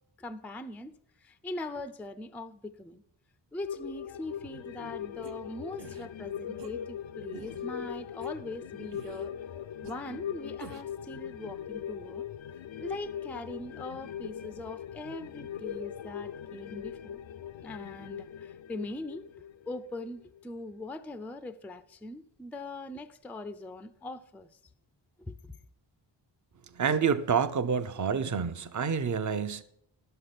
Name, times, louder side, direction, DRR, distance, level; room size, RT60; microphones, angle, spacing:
voice 1, 0.2-0.9 1.2-3.0 3.5-9.5 9.8-12.3 12.8-17.2 17.6-19.2 19.7-24.6 25.2-25.5, left 2 dB, 5° left, 0.4 m, -41 dB
sound 1, 3.6-20.4 20.8-20.9, left 9 dB, 85° left, 0.6 m, -40 dB
sound 2, 5.2-5.3 5.8-6.1 6.6-6.7 7.3-7.6 8.2-8.3 8.9-9.3 9.8-9.9 10.6-11.0, right 9 dB, 70° right, 0.9 m, -49 dB
voice 2, 26.7-29.6, right 6 dB, 40° right, 0.7 m, -28 dB
12.0 x 6.9 x 5.8 m
wide cardioid pair, 140°, 45 cm